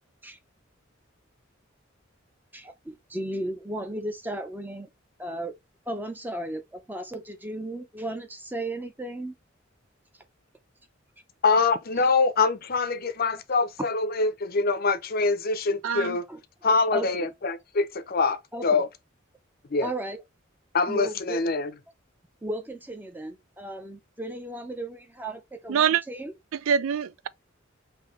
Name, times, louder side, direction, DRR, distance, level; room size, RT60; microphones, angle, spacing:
voice 1, 2.5-4.9 5.2-5.5 5.9-9.3 16.3-17.3 18.5-18.8 19.8-20.2 20.9-21.4 22.4-26.3, right 1 dB, 10° right, 0.7 m, -35 dB
voice 2, 11.4-16.2 16.6-18.9 19.7-19.9 20.7-21.7, left 4 dB, 50° left, 0.6 m, -24 dB
voice 3, 15.8-16.2 25.7-26.0 26.7-27.3, right 7 dB, 85° right, 0.4 m, -24 dB
5.3 x 2.8 x 3.1 m
head